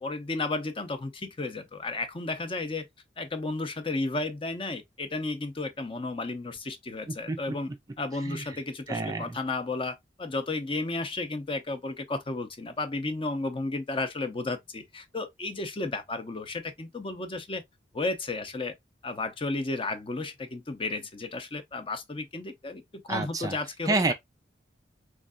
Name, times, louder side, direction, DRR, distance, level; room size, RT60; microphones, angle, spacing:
voice 1, 0.0-2.9 3.2-7.7 8.0-17.6 17.9-18.7 19.0-22.8 23.1-24.1, left 3 dB, 30° left, 0.6 m, -33 dB
voice 2, 8.9-9.4 23.1-23.6 23.9-24.1, right 3 dB, 20° right, 0.4 m, -28 dB
3.6 x 3.2 x 2.4 m
head